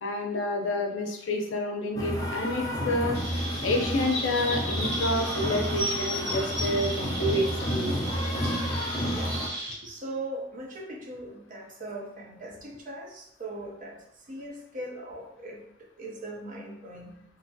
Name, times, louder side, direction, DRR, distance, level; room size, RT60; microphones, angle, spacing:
voice 1, 0.0-3.2 3.6-7.9, left 1 dB, 80° left, 3 dB, 0.5 m, -29 dB
sound 1, 2.0-9.5, equal, 20° left, 0.4 m, -31 dB
Chirp tweet, 3.1-9.7, equal, 60° right, 1.5 m, -34 dB
voice 2, 9.1-17.2, right 1 dB, 45° right, 0 dB, 0.4 m, -40 dB
2.7 x 2.3 x 2.6 m, 0.81 s
head